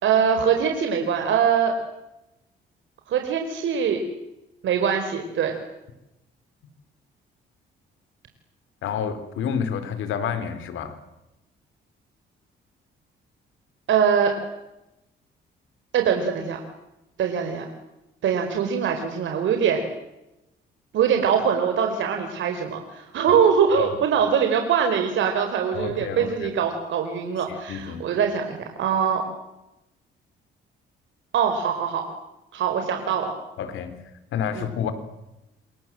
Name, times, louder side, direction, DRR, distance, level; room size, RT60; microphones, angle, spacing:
voice 1, 0.0-1.7 3.1-4.0 4.6-5.6 13.9-14.3 15.9-16.6 17.2-17.7 18.2-19.9 20.9-29.2 31.3-32.0 32.5-33.3 34.5-34.7, right 7 dB, 75° right, 4 dB, 4.6 m, -22 dB
voice 2, 8.8-11.0 23.7-23.9 25.7-26.5 27.5-28.1 33.6-33.9 34.3-34.9, left 7 dB, 80° left, 10 dB, 4.3 m, -29 dB
28.5 x 26.5 x 7.8 m, 0.93 s
cardioid pair, 90°, 20 cm